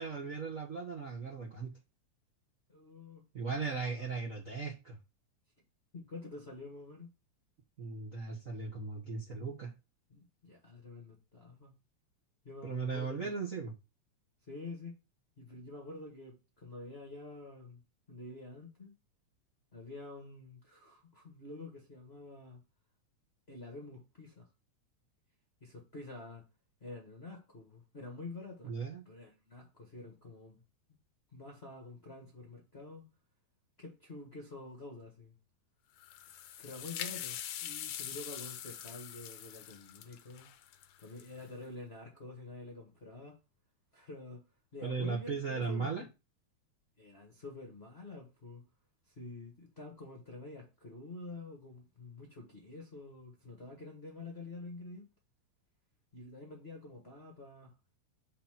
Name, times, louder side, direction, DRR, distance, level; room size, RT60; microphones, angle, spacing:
voice 1, 0.0-1.7 3.3-5.0 7.8-9.7 12.6-13.7 28.6-29.0 44.8-46.0, right 4 dB, 40° right, 1.2 m, -37 dB
voice 2, 2.7-3.2 3.8-4.1 5.9-7.1 10.1-11.7 12.4-13.3 14.5-15.0 15.4-17.8 18.1-18.9 19.7-22.6 23.5-24.5 25.6-26.4 26.8-28.7 29.0-30.6 31.3-33.1 33.8-35.3 36.6-40.5 41.0-43.4 43.9-44.4 44.7-45.9 47.0-48.7 49.1-55.0 56.1-57.9, left 2 dB, 30° left, 1.2 m, -48 dB
sound 1, 36.0-41.5, left 11 dB, 80° left, 2.1 m, -43 dB
5.8 x 4.8 x 5.9 m
omnidirectional pair, 3.4 m